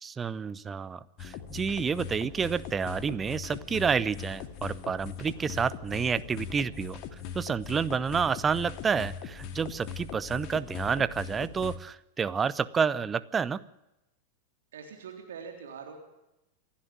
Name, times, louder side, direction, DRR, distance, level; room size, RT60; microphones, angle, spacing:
voice 1, 0.0-7.0 7.3-13.6, right 6 dB, 20° right, 17 dB, 0.8 m, -29 dB
sound 1, 1.2-11.8, left 8 dB, 40° left, 2.1 m, -40 dB
voice 2, 14.7-16.0, right 6 dB, 60° right, 3 dB, 3.6 m, -43 dB
28.0 x 11.5 x 9.0 m, 0.91 s
figure-of-eight pair, 90°, 0 cm